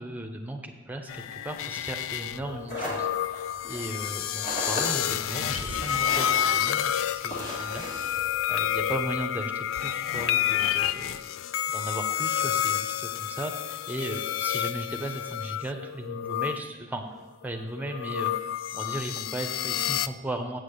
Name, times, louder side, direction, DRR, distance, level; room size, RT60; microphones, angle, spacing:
voice 1, 0.0-11.2 11.7-20.6, right 1 dB, 10° right, 4 dB, 0.9 m, -36 dB
sound 1, 1.1-16.6 17.4-20.1, left 11 dB, 75° left, 0.3 m, -29 dB
sound 2, 2.3-9.0, equal, 40° left, 2.4 m, -38 dB
7.9 x 7.4 x 6.6 m, 1.2 s
head